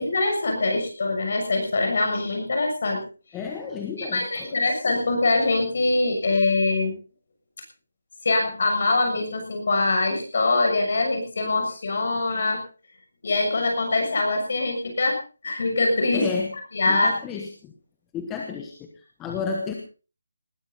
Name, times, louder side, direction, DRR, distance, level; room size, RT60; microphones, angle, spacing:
voice 1, 0.0-3.0 4.0-6.9 8.2-12.6 13.2-15.2 15.4-16.3 16.7-17.1, left 2 dB, 40° left, 3 dB, 6.9 m, -23 dB
voice 2, 3.3-4.5 16.1-16.5 16.9-17.7 18.1-18.8 19.2-19.7, left 5 dB, 5° left, 2 dB, 1.1 m, -31 dB
20.0 x 14.5 x 4.0 m, 0.36 s
hypercardioid pair, 180°, 0 cm